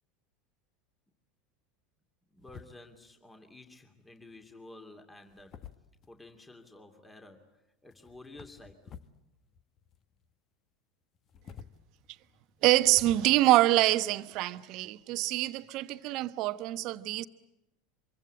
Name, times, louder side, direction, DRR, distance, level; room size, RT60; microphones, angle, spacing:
voice 1, 2.3-5.6 6.1-9.1, left 2 dB, 10° left, 2.7 m, -52 dB
sound 1, 2.4-3.1 4.2-4.5 5.2-6.4 7.9-9.2 9.5-10.3 11.1-13.2, left 7 dB, 40° left, 1.3 m, -51 dB
voice 2, 12.6-17.2, right 16 dB, 50° right, 1.0 m, -25 dB
25.5 x 23.5 x 8.8 m
figure-of-eight pair, 80°, 0 cm